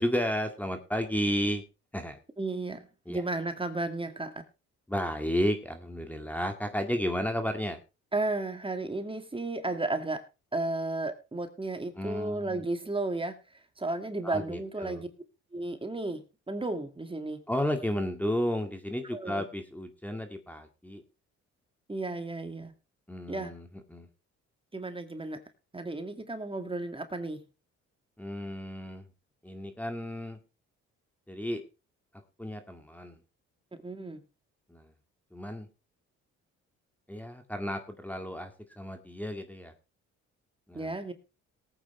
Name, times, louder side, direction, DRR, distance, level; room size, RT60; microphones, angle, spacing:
voice 1, 0.0-1.6 1.9-2.2 3.1-3.2 4.9-7.8 12.0-12.6 14.2-15.0 17.5-21.0 23.1-24.1 28.2-29.1 29.4-30.4 31.3-31.6 32.4-33.2 34.7-34.9 35.3-35.7 37.1-38.5 38.8-39.7 40.7-40.9, equal, 5° left, 6 dB, 1.9 m, -32 dB
voice 2, 2.4-4.4 8.1-10.2 10.5-15.1 15.5-17.4 19.1-19.5 21.9-22.7 23.3-23.5 24.7-25.4 25.7-27.4 33.7-34.2 40.7-41.1, right 2 dB, 15° right, 7 dB, 2.2 m, -34 dB
19.0 x 8.9 x 3.3 m, 0.30 s
cardioid pair, 90°, 30 cm